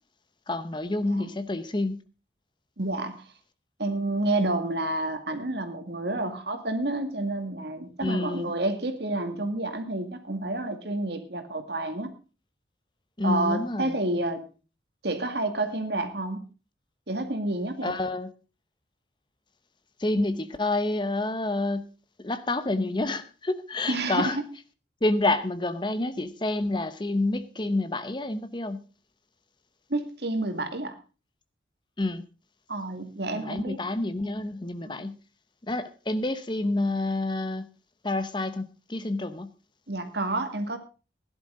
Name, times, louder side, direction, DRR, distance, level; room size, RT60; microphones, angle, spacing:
voice 1, 0.5-2.0 8.0-8.5 13.2-13.9 17.8-18.3 20.0-21.9 22.2-24.4 25.0-28.8 32.0-32.2 33.3-35.2 35.7-37.7 38.0-39.5, left 2 dB, 25° left, 12 dB, 0.8 m, -28 dB
voice 2, 2.8-3.2 3.8-12.1 13.2-14.4 15.0-16.4 17.1-18.0 23.9-24.4 29.9-31.0 32.7-33.8 34.9-35.0 39.9-40.8, right 2 dB, 65° right, 7 dB, 2.3 m, -29 dB
17.0 x 11.0 x 3.8 m, 0.33 s
head